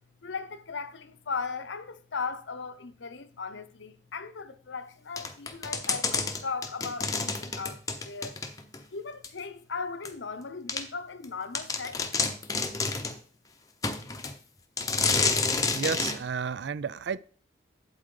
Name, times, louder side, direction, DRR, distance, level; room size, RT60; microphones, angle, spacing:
voice 1, 0.2-8.3 8.9-12.1, left 4 dB, 80° left, 0.8 m, -37 dB
sound 1, 5.2-8.8 9.2-9.3 10.0-10.1 10.7-10.8 11.2-11.3 11.5-13.2 13.8-14.3 14.8-16.2, left 4 dB, 20° left, 0.7 m, -29 dB
voice 2, 15.7-17.2, right 6 dB, 70° right, 0.4 m, -31 dB
8.4 x 8.0 x 3.8 m
head